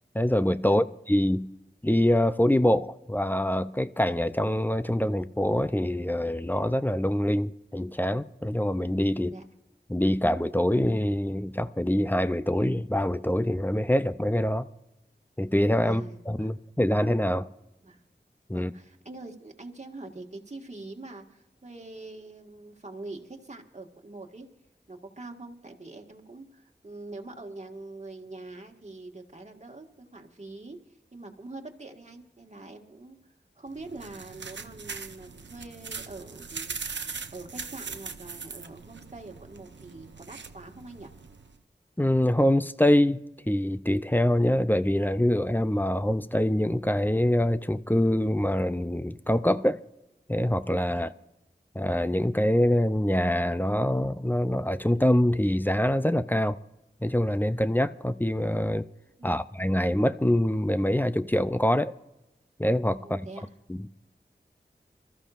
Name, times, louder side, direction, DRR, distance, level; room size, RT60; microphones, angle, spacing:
voice 1, 0.1-1.5 1.8-9.3 9.9-14.7 15.4-17.5 18.5-18.7 42.0-43.2 43.5-49.8 50.3-51.1 51.8-56.6 57.0-58.8 59.2-61.9 62.6-63.2 63.7-63.9, left 1 dB, 10° left, 0.5 m, -25 dB
voice 2, 15.8-16.5 17.8-18.0 18.5-24.5 24.9-33.2 33.6-36.7 37.3-41.1 50.9-51.1 59.2-59.4 63.0-63.5, right 2 dB, 40° right, 1.7 m, -44 dB
sound 1, 33.7-41.6, right 5 dB, 90° right, 0.7 m, -41 dB
25.5 x 13.5 x 2.5 m
wide cardioid pair, 50°, 18 cm